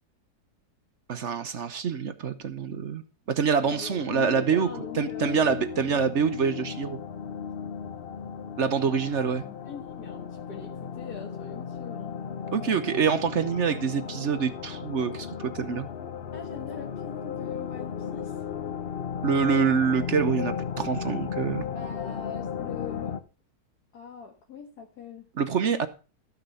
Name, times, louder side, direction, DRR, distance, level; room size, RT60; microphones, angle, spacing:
voice 1, 1.1-3.0 3.3-4.7 5.0-7.0 8.6-9.4 12.5-15.9 19.2-21.7 25.4-25.9, right 6 dB, 55° right, 1.0 m, -26 dB
sound 1, 3.6-23.2, left 7 dB, 45° left, 0.8 m, -35 dB
voice 2, 3.7-6.1 8.8-9.1 9.4-12.2 16.3-18.5 21.6-23.2 23.9-25.3 25.8-25.9, left 6 dB, 70° left, 2.0 m, -42 dB
13.5 x 6.6 x 5.6 m
omnidirectional pair, 1.7 m